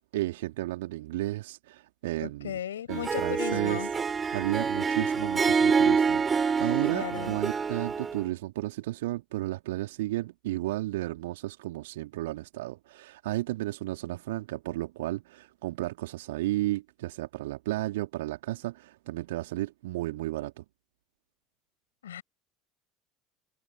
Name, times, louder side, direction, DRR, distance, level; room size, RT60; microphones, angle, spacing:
voice 1, 0.1-2.6 2.9-3.8 4.3-20.6, right 17 dB, 65° right, 3.1 m, -33 dB
voice 2, 2.2-3.9 6.9-7.4 22.0-22.2, left 10 dB, 75° left, 6.8 m, -36 dB
Harp, 2.9-8.2, right 5 dB, 25° right, 3.2 m, -27 dB
figure-of-eight pair, 65°, 0 cm